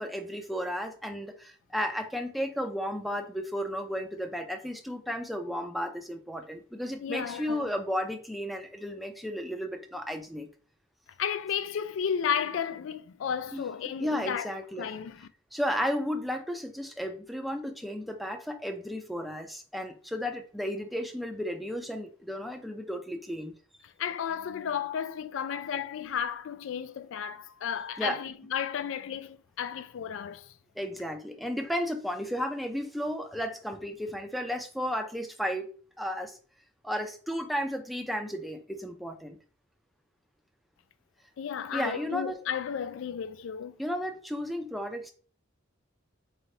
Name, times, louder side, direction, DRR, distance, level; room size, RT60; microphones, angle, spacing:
voice 1, 0.0-10.5 13.5-13.6 14.0-14.9 15.5-23.5 28.0-28.2 30.8-35.7 36.0-36.4 36.8-39.4 41.7-42.4 43.8-45.1, equal, ahead, 0.4 m, -33 dB
voice 2, 7.0-7.7 11.2-14.5 14.8-15.3 23.8-30.5 41.4-43.8, left 8 dB, 75° left, 0.3 m, -33 dB
3.9 x 3.2 x 2.7 m
head